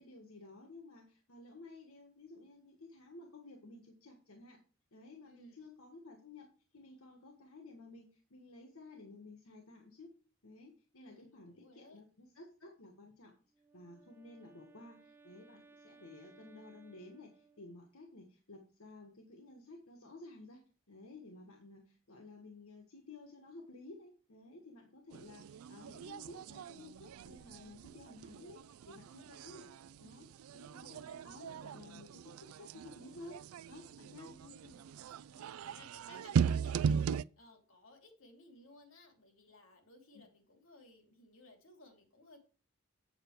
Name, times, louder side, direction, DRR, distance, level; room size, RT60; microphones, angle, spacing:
voice 1, 0.0-4.6 4.9-10.1 10.4-13.3 13.7-20.6 20.9-29.7 30.0-33.4 33.7-34.3, left 2 dB, 85° left, 3 dB, 1.6 m, -54 dB
voice 2, 5.2-5.7 11.0-12.0 34.2-42.4, left 2 dB, 70° left, 4 dB, 2.9 m, -60 dB
Wind instrument woodwind instrument, 13.5-18.0, right 4 dB, 10° right, 0.5 m, -63 dB
sound 1, 25.1-37.2, right 7 dB, 85° right, 0.3 m, -39 dB
8.3 x 8.0 x 4.7 m, 0.38 s
head